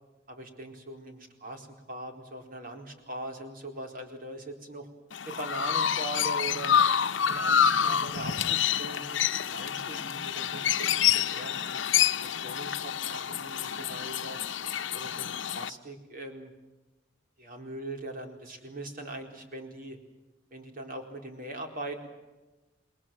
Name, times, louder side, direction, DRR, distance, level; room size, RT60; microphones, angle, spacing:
voice 1, 0.3-4.9 5.2-6.8 7.3-11.8 12.2-14.4 14.9-16.5 17.4-20.0 20.5-22.1, right 2 dB, 50° right, 3 dB, 4.3 m, -41 dB
Chirp tweet, 5.1-15.7, left 8 dB, 75° left, 0.8 m, -27 dB
28.5 x 21.5 x 7.7 m, 1.1 s
head